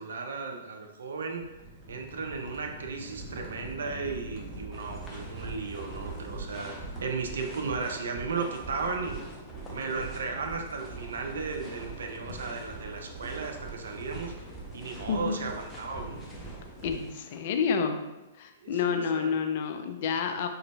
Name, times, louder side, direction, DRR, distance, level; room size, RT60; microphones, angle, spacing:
voice 1, 0.0-1.4 1.9-9.3 9.7-14.3 14.7-16.2 18.6-19.3, right 4 dB, 65° right, 3 dB, 0.5 m, -35 dB
sound 1, 1.2-17.0, right 3 dB, 20° right, 1.0 m, -43 dB
sound 2, 4.7-17.4, left 1 dB, 5° left, 0.6 m, -50 dB
voice 2, 15.1-15.4 16.8-18.0 18.4-20.5, left 6 dB, 45° left, 7 dB, 0.3 m, -29 dB
3.8 x 3.1 x 2.3 m, 1.1 s
figure-of-eight pair, 110°, 0 cm